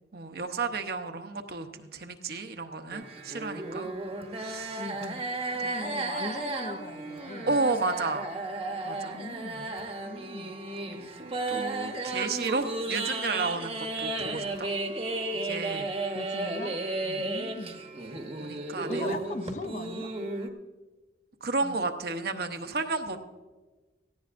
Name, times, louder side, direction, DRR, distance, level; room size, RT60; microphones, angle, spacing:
voice 1, 0.1-3.9 4.4-4.8 5.6-6.2 7.5-8.3 8.8-9.2 10.9-14.7 15.3-15.9 17.0-17.3 18.4-19.2 21.4-23.2, right 3 dB, 60° right, 6 dB, 0.9 m, -32 dB
sound 1, 2.9-20.5, right 2 dB, 35° right, 1.0 m, -34 dB
voice 2, 4.8-5.2 5.6-7.6 9.1-9.8 10.0-10.5 16.1-16.8 17.2-17.8 18.9-20.1 21.6-21.9, left 2 dB, 40° left, 7 dB, 0.8 m, -39 dB
17.5 x 15.0 x 2.6 m, 1.3 s
head